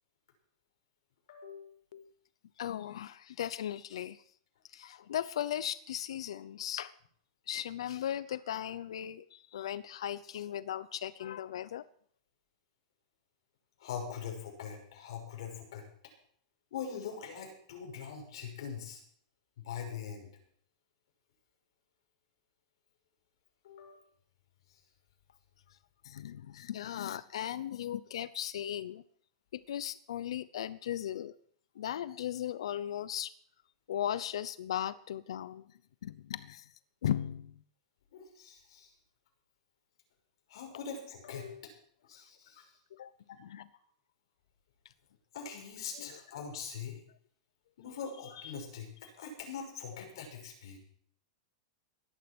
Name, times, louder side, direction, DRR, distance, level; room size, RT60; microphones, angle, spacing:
voice 1, 1.3-1.7 13.8-15.8 16.7-19.0 19.6-20.3 23.6-24.0 38.1-38.9 40.5-41.7 42.1-42.7 45.3-47.0 47.8-50.8, left 7 dB, 60° left, 2 dB, 6.0 m, -42 dB
voice 2, 2.6-4.2 4.7-6.9 7.5-11.9 26.0-29.0 29.5-31.3 31.8-33.3 33.9-35.7 36.0-36.7 37.0-37.6 42.9-43.1 43.4-43.7 45.9-46.2, left 10 dB, 85° left, 16 dB, 0.7 m, -37 dB
18.0 x 12.0 x 6.2 m, 0.62 s
supercardioid pair, 180°, 3 cm